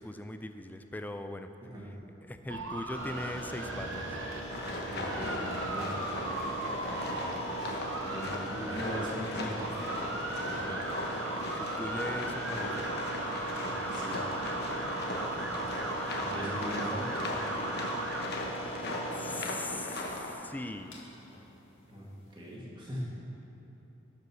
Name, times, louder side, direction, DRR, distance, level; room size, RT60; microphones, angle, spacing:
voice 1, 0.0-1.5 1.8-2.0 2.2-4.2 7.1-7.8 10.6-10.8 11.5-12.9 15.1-15.9 19.1-21.0, left 1 dB, 10° left, 8 dB, 0.3 m, -41 dB
sound 1, 2.5-18.2, right 2 dB, 70° right, 0.9 m, -38 dB
sound 2, 2.9-22.5, right 2 dB, 80° left, 1.8 m, -43 dB
sound 3, 4.5-20.3, left 2 dB, 55° left, 1.1 m, -38 dB
voice 2, 4.8-5.9 8.1-9.7 13.6-14.2 16.1-17.1 21.9-22.1 22.3-23.0, equal, 25° right, -5 dB, 2.0 m, -39 dB
11.5 x 5.3 x 6.2 m, 3.0 s
head